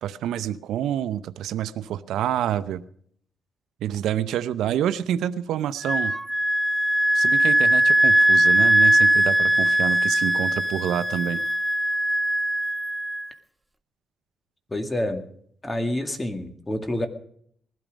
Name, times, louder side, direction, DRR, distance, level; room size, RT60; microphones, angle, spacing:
voice 1, 0.0-2.8 3.8-6.1 7.1-11.4, right 10 dB, 80° right, 13 dB, 0.7 m, -27 dB
Wind instrument woodwind instrument, 5.8-13.3, right 1 dB, 10° right, 0.6 m, -20 dB
voice 2, 14.7-15.3 15.6-17.1, left 1 dB, 15° left, 7 dB, 2.1 m, -28 dB
19.5 x 12.5 x 5.2 m, 0.64 s
cardioid pair, 90°, 0 cm